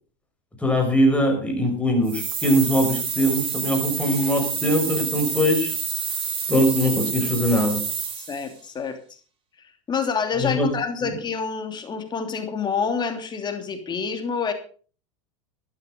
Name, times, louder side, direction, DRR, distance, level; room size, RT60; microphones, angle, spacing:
voice 1, 0.6-5.7 6.5-7.8 10.4-10.7, equal, 10° left, 2 dB, 5.9 m, -21 dB
sound 1, 2.0-8.5, right 6 dB, 35° right, 4.0 m, -28 dB
voice 2, 8.2-9.2 9.6-14.5, left 5 dB, 30° left, 6 dB, 3.0 m, -28 dB
13.0 x 11.5 x 5.3 m, 0.42 s
hypercardioid pair, 105°, 16 cm